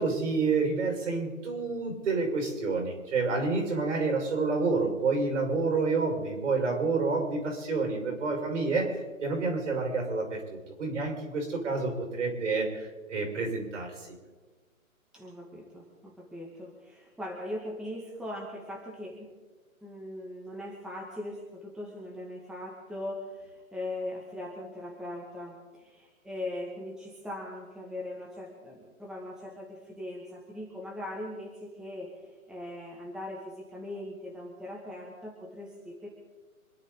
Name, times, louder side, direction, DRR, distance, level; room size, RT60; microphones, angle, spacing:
voice 1, 0.0-14.1, right 4 dB, 60° right, 2 dB, 5.7 m, -29 dB
voice 2, 15.1-19.3 19.8-32.1 32.5-36.1, left 1 dB, ahead, -3 dB, 2.2 m, -40 dB
27.0 x 10.5 x 4.0 m, 1.4 s
figure-of-eight pair, 140°, 42 cm